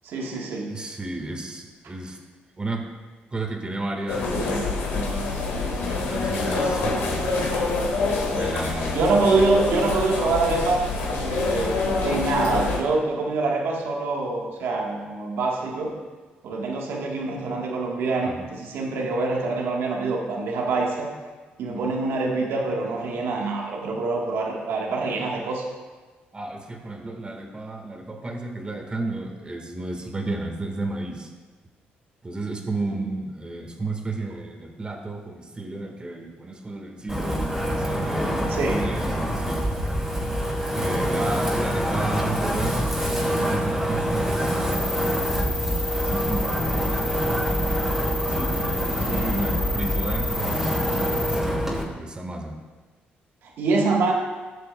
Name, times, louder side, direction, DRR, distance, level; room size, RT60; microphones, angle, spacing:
voice 1, 0.0-0.7 8.9-15.9 16.4-21.1 21.6-25.6 32.9-33.1 38.5-38.9 49.1-49.5 53.6-54.1, right 3 dB, 70° right, -1 dB, 1.3 m, -25 dB
voice 2, 0.7-2.2 2.6-2.8 3.3-7.4 8.3-9.0 18.2-18.5 21.7-22.0 24.8-25.0 26.3-31.3 32.2-37.4 37.7-39.7 40.4-47.2 48.3-52.5, right 2 dB, 25° right, 3 dB, 1.5 m, -33 dB
sound 1, 4.1-12.8, left 3 dB, 85° left, 1.7 m, -26 dB
Wind, 37.1-51.8, equal, 10° right, 2.4 m, -25 dB
sound 2, 44.7-51.4, left 2 dB, 10° left, 2.3 m, -31 dB
16.0 x 6.8 x 2.2 m, 1.3 s
supercardioid pair, 75°, 4 cm